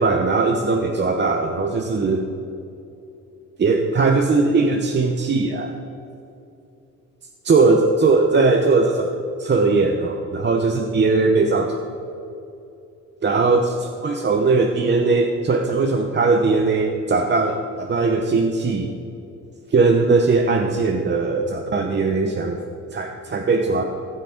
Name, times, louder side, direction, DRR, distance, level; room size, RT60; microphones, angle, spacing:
voice 1, 0.0-2.3 3.6-5.7 7.4-9.1 9.4-11.8 13.2-18.9 19.7-22.6 22.9-23.8, right 3 dB, 35° right, 3 dB, 0.9 m, -19 dB
15.0 x 6.6 x 5.0 m, 2.7 s
cardioid pair, 90°, 30 cm